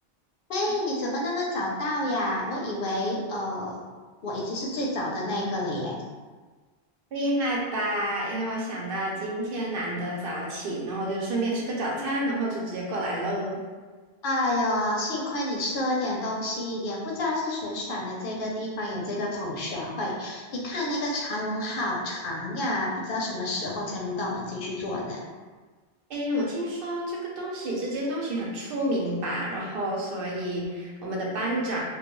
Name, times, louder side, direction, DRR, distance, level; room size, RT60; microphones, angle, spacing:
voice 1, 0.5-3.8 4.2-6.0 14.2-25.2, left 1 dB, 65° left, -2 dB, 0.7 m, -29 dB
voice 2, 7.1-13.6 26.1-31.9, right 1 dB, 65° right, -3 dB, 0.8 m, -29 dB
2.3 x 2.2 x 2.9 m, 1.4 s
omnidirectional pair, 1.0 m